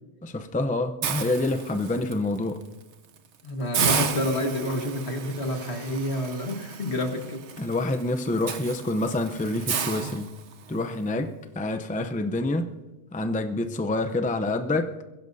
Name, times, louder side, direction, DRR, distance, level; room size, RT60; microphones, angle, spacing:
voice 1, 0.2-2.6 7.6-10.3 10.7-12.7 13.1-14.9, left 2 dB, 10° left, 0.5 m, -27 dB
Hiss, 1.0-2.1 2.6-2.8 3.2-3.3 3.7-10.8, right 7 dB, 90° right, 1.2 m, -32 dB
voice 2, 3.4-7.4, left 1 dB, 70° left, 1.9 m, -29 dB
22.5 x 16.0 x 2.7 m
omnidirectional pair, 1.1 m